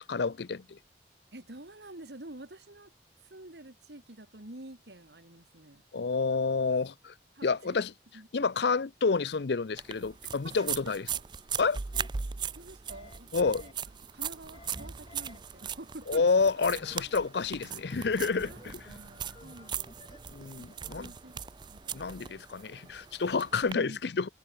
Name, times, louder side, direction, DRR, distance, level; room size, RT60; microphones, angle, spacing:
voice 1, 0.1-0.8 5.9-7.1 7.4-7.9 8.3-11.1 11.6-11.8 13.3-13.6 16.1-18.8 20.3-21.1 21.9-24.3, left 4 dB, 75° left, 0.6 m, -29 dB
voice 2, 1.3-2.9 3.2-5.8 7.3-7.8 8.1-8.8 10.4-11.2 12.5-13.7 14.1-16.2 17.1-17.2 18.4-20.1 20.7-22.4 23.6-24.0, right 1 dB, 75° right, 2.6 m, -49 dB
sound 1, 9.8-23.7, right 7 dB, 25° right, 0.4 m, -39 dB
sound 2, 11.9-12.1 12.9-13.7 14.5-15.4 16.1-17.0 17.8-19.0 19.4-20.2 20.8-21.1, left 1 dB, 30° left, 5.2 m, -52 dB
head